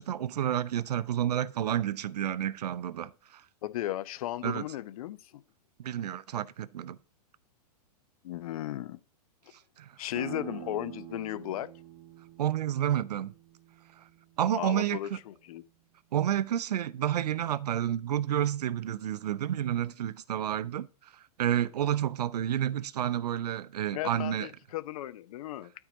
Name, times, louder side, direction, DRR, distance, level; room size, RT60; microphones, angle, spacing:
voice 1, 0.0-3.4 4.4-4.6 5.8-7.0 9.8-9.9 12.4-13.3 14.4-15.2 16.1-20.9 21.4-24.5, right 11 dB, 80° right, 0.6 m, -30 dB
voice 2, 3.6-5.4 8.2-9.0 10.0-11.7 14.6-15.6 23.9-25.7, left 14 dB, 60° left, 0.8 m, -36 dB
sound 1, 10.1-15.5, right 12 dB, 40° right, 2.4 m, -47 dB
12.0 x 4.7 x 3.9 m
hypercardioid pair, 130°, 20 cm